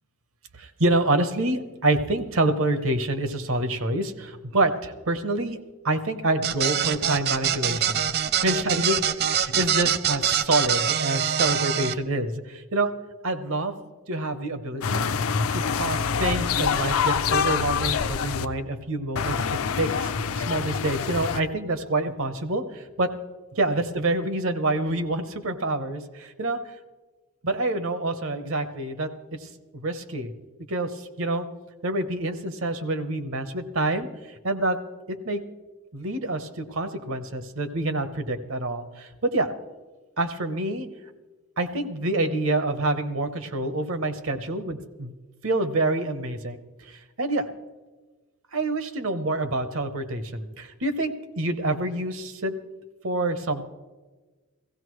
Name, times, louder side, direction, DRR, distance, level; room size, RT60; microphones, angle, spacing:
voice 1, 0.6-5.6 5.8-8.0 8.4-12.9 13.2-13.8 14.1-15.1 15.5-20.1 20.4-23.1 23.6-26.6 27.4-29.1 29.4-30.3 30.7-31.5 31.8-34.1 34.4-34.8 35.1-35.4 35.9-39.5 40.2-40.9 41.6-45.1 45.4-46.6 46.9-47.5 48.5-52.5 53.0-53.6, right 2 dB, 70° right, 10 dB, 1.0 m, -27 dB
sound 1, 6.4-11.9, right 8 dB, 45° right, 0.4 m, -24 dB
sound 2, 14.8-18.5 19.2-21.4, left 6 dB, 75° left, 0.5 m, -25 dB
16.0 x 16.0 x 3.1 m, 1.3 s
head